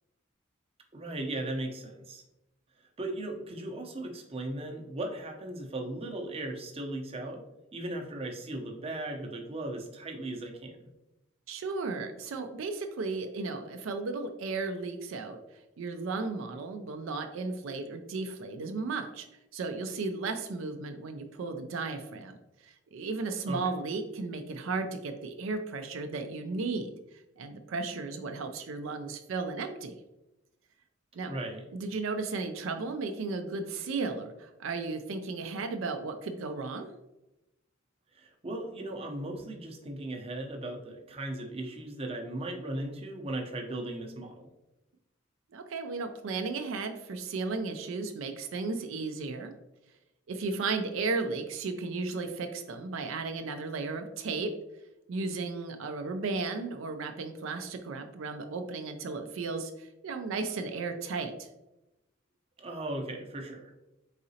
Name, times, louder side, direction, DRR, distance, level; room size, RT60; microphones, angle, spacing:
voice 1, 0.9-2.2 3.0-7.4 7.7-10.8 23.4-23.6 31.2-31.6 38.1-44.5 62.6-63.7, right 1 dB, 30° right, 2 dB, 0.6 m, -37 dB
voice 2, 11.5-15.4 15.8-19.3 19.5-22.4 22.6-26.9 27.4-29.9 31.1-31.3 31.7-36.9 45.5-49.5 50.3-54.5 55.1-61.5, right 3 dB, 80° right, 6 dB, 0.4 m, -34 dB
4.0 x 3.7 x 2.7 m, 0.95 s
head